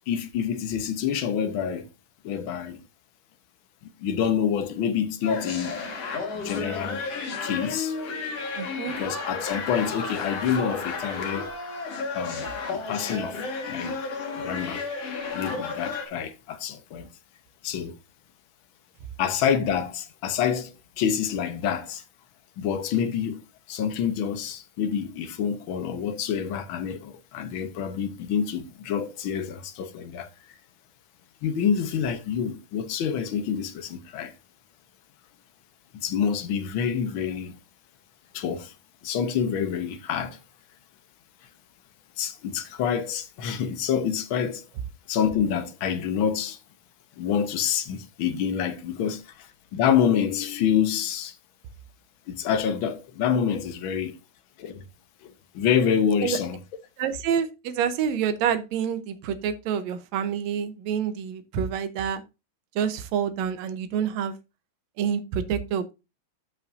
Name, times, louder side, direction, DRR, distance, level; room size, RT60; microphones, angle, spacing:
voice 1, 0.1-1.9 2.2-2.8 4.0-5.8 6.3-7.0 7.4-8.0 8.9-11.5 12.1-12.5 12.7-13.4 13.7-14.0 14.4-14.8 15.3-17.1 17.6-18.0 19.2-22.0 22.6-23.4 23.7-30.3 31.4-34.3 35.9-37.5 38.3-38.7 39.0-40.4 42.2-44.6 45.1-46.6 47.2-51.3 52.3-54.2 54.6-54.8 55.2-56.6, left 8 dB, 75° left, 1.1 m, -27 dB
sound 1, 5.2-16.1, left 4 dB, 55° left, 2.7 m, -32 dB
voice 2, 8.6-9.0 56.2-56.4 57.0-62.2 62.8-64.4 65.0-65.9, right 8 dB, 70° right, 2.1 m, -27 dB
14.0 x 5.5 x 2.6 m
omnidirectional pair, 3.5 m